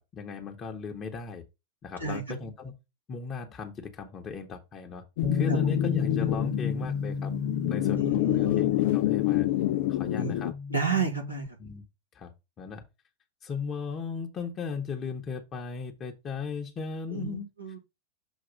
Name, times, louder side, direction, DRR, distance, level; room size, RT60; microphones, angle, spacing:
voice 1, 0.0-1.4 1.8-2.8 3.1-5.0 5.3-7.3 7.6-9.5 9.9-10.5 11.6-11.8 12.1-12.3 12.6-12.8 13.4-17.5, left 5 dB, 25° left, 1.1 m, -37 dB
sound 1, 5.2-10.5, left 16 dB, 50° left, 0.3 m, -27 dB
Bass guitar, 5.2-11.5, left 4 dB, 5° right, 1.2 m, -33 dB
voice 2, 8.0-8.7 10.2-10.3 10.7-11.5 17.1-17.8, right 5 dB, 85° right, 2.5 m, -31 dB
7.2 x 2.9 x 5.2 m
figure-of-eight pair, 90°, 0 cm